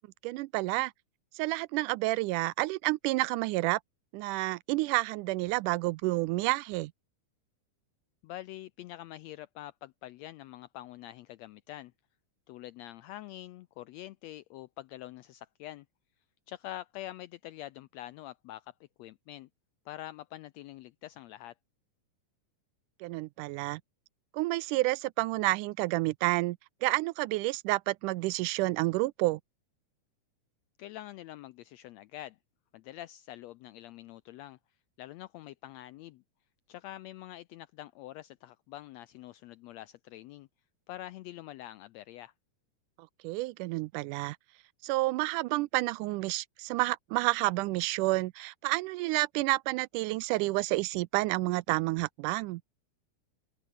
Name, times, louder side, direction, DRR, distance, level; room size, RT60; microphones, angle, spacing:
voice 1, 0.2-0.9 1.3-3.8 4.1-6.9 23.0-23.8 24.3-29.4 43.2-44.4 44.8-52.6, right 20 dB, 85° right, 2.1 m, -30 dB
voice 2, 8.2-11.9 12.5-15.9 16.5-19.5 19.9-21.5 30.8-32.4 32.7-34.6 35.0-36.2 36.7-40.5 40.9-42.3, left 14 dB, 80° left, 1.5 m, -45 dB
open air
omnidirectional pair, 3.6 m